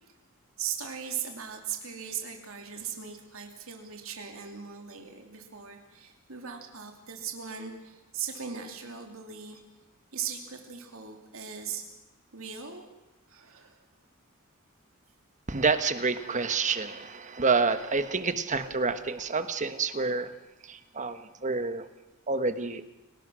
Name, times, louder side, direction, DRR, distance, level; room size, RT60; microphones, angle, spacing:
voice 1, 0.6-9.6 10.1-11.8 12.3-12.8 13.3-13.8, right 7 dB, 70° right, 3 dB, 2.7 m, -39 dB
voice 2, 15.5-20.3 20.6-21.9 22.3-22.9, right 4 dB, 35° right, 10 dB, 1.3 m, -28 dB
30.0 x 18.5 x 6.3 m, 1.0 s
head